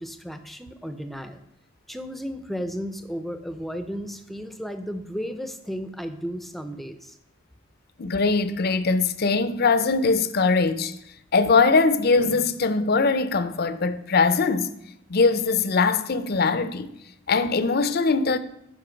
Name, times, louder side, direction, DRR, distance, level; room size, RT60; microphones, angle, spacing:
voice 1, 0.0-1.4 1.9-7.2, equal, ahead, 0.6 m, -34 dB
voice 2, 8.0-10.9 11.3-14.7 15.1-16.9 17.3-18.4, left 4 dB, 50° left, 0.6 m, -21 dB
13.0 x 5.2 x 5.2 m
head